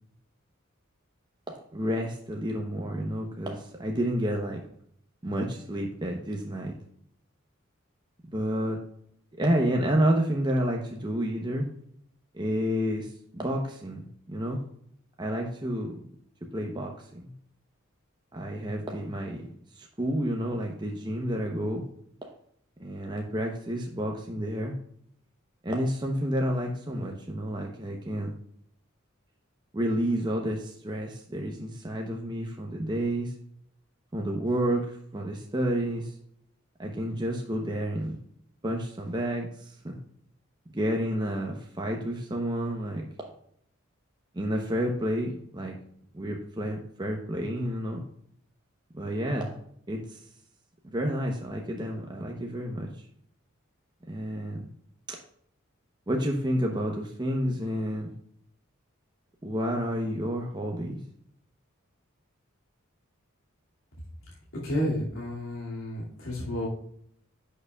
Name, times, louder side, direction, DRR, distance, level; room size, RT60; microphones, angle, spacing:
voice 1, 1.5-4.6 5.2-6.7 8.3-8.8 9.4-11.7 12.3-14.6 15.2-16.0 16.5-17.3 18.3-19.5 19.8-21.8 22.2-22.3 22.8-24.7 25.6-28.3 29.7-33.3 34.1-36.1 36.8-38.2 38.6-40.0 40.7-43.3 44.3-45.7 46.1-48.0 48.9-49.6 49.9-50.2 50.8-52.9 54.1-54.7 55.1-55.2 56.1-58.1 59.4-61.0, equal, 20° right, 1 dB, 0.9 m, -30 dB
voice 2, 64.6-66.7, left 1 dB, 85° left, -6 dB, 2.4 m, -31 dB
10.5 x 6.7 x 2.4 m, 0.68 s
head